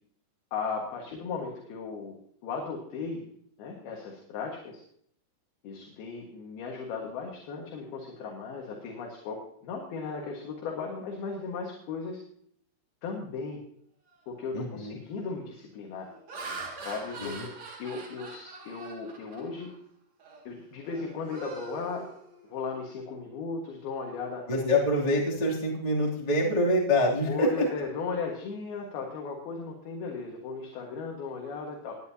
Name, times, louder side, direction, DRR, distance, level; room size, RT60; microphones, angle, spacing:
voice 1, 0.5-2.2 2.4-3.3 3.6-4.8 5.6-12.2 13.0-13.6 14.3-16.1 16.8-17.5 17.8-19.7 20.4-22.1 22.5-24.4 27.3-32.0, left 5 dB, 60° left, 0 dB, 3.3 m, -36 dB
Laughter, 14.2-14.5 15.0-15.3 15.9-19.8 20.2-20.4 20.8-22.8, right 3 dB, 45° right, 2.7 m, -43 dB
voice 2, 14.5-15.0 17.2-17.5 24.5-27.7, left 1 dB, 10° left, -4 dB, 1.8 m, -26 dB
19.5 x 10.5 x 2.9 m, 0.64 s
omnidirectional pair, 5.4 m